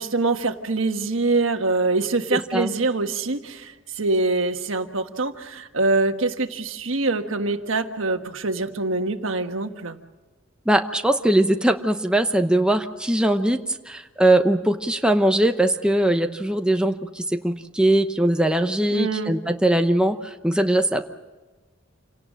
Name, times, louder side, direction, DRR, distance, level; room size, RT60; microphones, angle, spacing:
voice 1, 0.0-10.0 18.9-19.3, right 3 dB, 70° right, 6 dB, 1.5 m, -24 dB
voice 2, 2.3-2.7 10.7-13.6 13.9-21.0, right 1 dB, 5° right, 5 dB, 0.8 m, -21 dB
28.0 x 18.0 x 7.5 m, 1.2 s
head